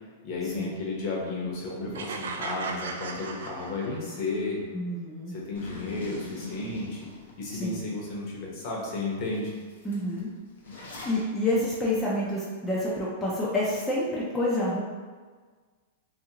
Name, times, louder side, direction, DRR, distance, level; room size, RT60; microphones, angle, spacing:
voice 1, 0.2-4.6 5.3-7.1 7.4-9.5, left 3 dB, 40° left, -3 dB, 0.8 m, -33 dB
sound 1, 1.9-4.3, right 4 dB, 80° right, 0.3 m, -37 dB
voice 2, 4.7-5.3 7.5-7.8 9.8-10.3 10.7-14.8, left 1 dB, 10° left, -7 dB, 0.4 m, -28 dB
Zipper (clothing), 5.5-7.8 8.3-8.4 8.8-8.9 9.2-11.2, left 2 dB, 85° left, 0.7 m, -41 dB
2.7 x 2.5 x 2.8 m, 1.5 s
hypercardioid pair, 145°, 0 cm